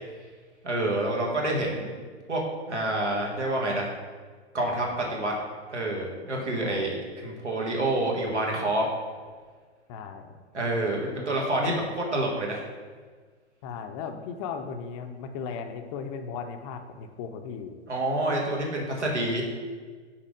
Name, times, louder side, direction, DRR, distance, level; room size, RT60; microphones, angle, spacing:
voice 1, 0.6-1.9 2.3-2.4 2.7-3.9 4.5-5.3 5.7-8.9 10.5-12.6 17.9-19.4, right 1 dB, 85° right, -1 dB, 1.5 m, -28 dB
voice 2, 6.6-6.9 9.9-10.5 11.0-11.3 11.6-11.7 13.6-17.8, left 6 dB, 30° left, 6 dB, 0.5 m, -37 dB
5.9 x 4.0 x 4.9 m, 1.5 s
figure-of-eight pair, 110°, 34 cm